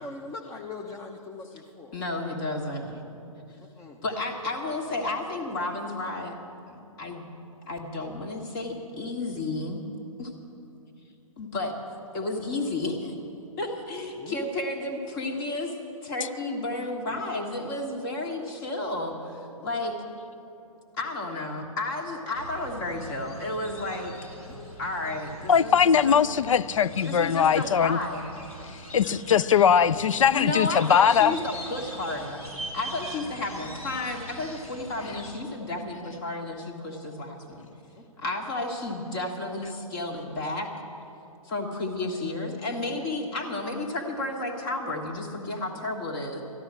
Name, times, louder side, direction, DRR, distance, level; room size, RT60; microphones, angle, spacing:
voice 1, 0.0-2.0 3.6-4.0 5.0-5.1 14.1-14.5 15.3-15.6 17.1-17.3 19.5-19.7 24.4-24.8 28.6-29.2 38.0-38.3, left 3 dB, 15° left, 2 dB, 0.7 m, -43 dB
voice 2, 1.9-3.0 4.0-6.3 6.7-7.3 7.7-9.8 10.2-10.3 11.4-11.7 12.1-13.1 13.6-15.7 16.0-20.0 21.0-24.1 24.8-26.2 27.0-28.3 30.3-32.4 32.7-37.7 38.2-40.7 41.4-46.4, left 2 dB, 35° left, 1 dB, 1.6 m, -32 dB
sound 1, 22.3-35.4, equal, 90° left, 3.1 m, -42 dB
voice 3, 25.5-28.0 28.9-31.3, left 7 dB, 65° left, 17 dB, 0.5 m, -20 dB
13.0 x 11.0 x 7.5 m, 2.7 s
figure-of-eight pair, 125°, 18 cm